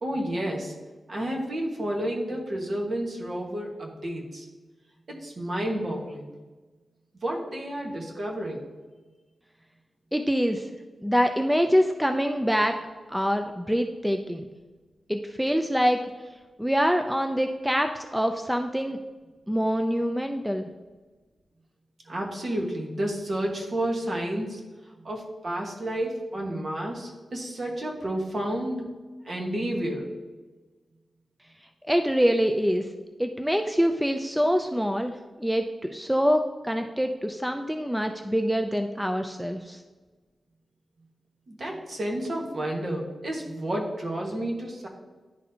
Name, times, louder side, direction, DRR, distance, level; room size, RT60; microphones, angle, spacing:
voice 1, 0.0-0.7 1.1-4.5 5.1-6.3 7.2-8.6 22.0-24.6 25.0-28.8 29.2-30.1 41.5-44.9, right 1 dB, 50° right, 0 dB, 1.4 m, -31 dB
voice 2, 10.1-10.7 11.0-12.8 13.1-14.5 15.1-16.0 16.6-19.0 19.5-20.7 31.9-32.9 33.2-35.1 35.4-39.8, equal, 5° right, 5 dB, 0.4 m, -25 dB
10.5 x 4.1 x 2.8 m, 1.3 s
wide cardioid pair, 85°, 0 cm